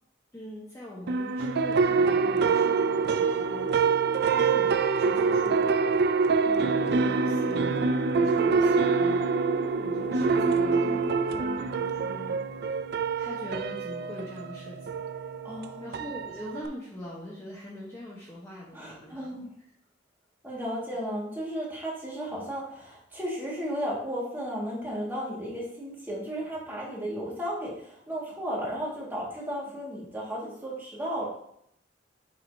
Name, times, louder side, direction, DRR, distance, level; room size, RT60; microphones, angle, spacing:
voice 1, 0.3-3.8 4.2-4.7 4.9-5.6 6.4-9.2 9.8-12.4 13.2-14.9 15.2-15.3 15.8-19.4, equal, 15° left, -6 dB, 1.1 m, -42 dB
sound 1, 1.1-16.7, right 4 dB, 60° right, 0.4 m, -25 dB
voice 2, 10.1-10.6 15.4-15.8 18.7-19.5 20.4-31.3, equal, 10° right, -5 dB, 1.9 m, -34 dB
7.4 x 5.0 x 2.8 m, 0.71 s
head